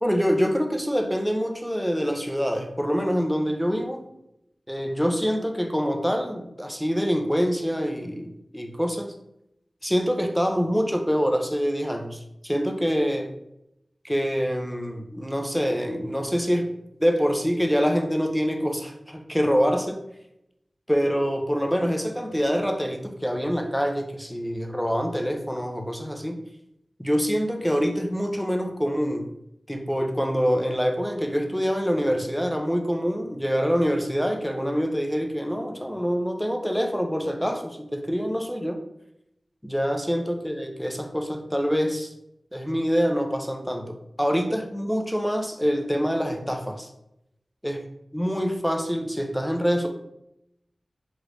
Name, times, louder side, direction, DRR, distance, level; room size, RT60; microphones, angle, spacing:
voice 1, 0.0-4.1 4.7-9.1 9.8-13.3 14.0-16.7 17.0-20.0 20.9-26.4 27.0-29.3 29.7-38.8 39.6-42.1 42.5-46.9 47.6-47.8 48.1-49.9, equal, 5° left, 4 dB, 0.5 m, -25 dB
3.2 x 2.5 x 3.1 m, 0.81 s
cardioid pair, 45°, 0 cm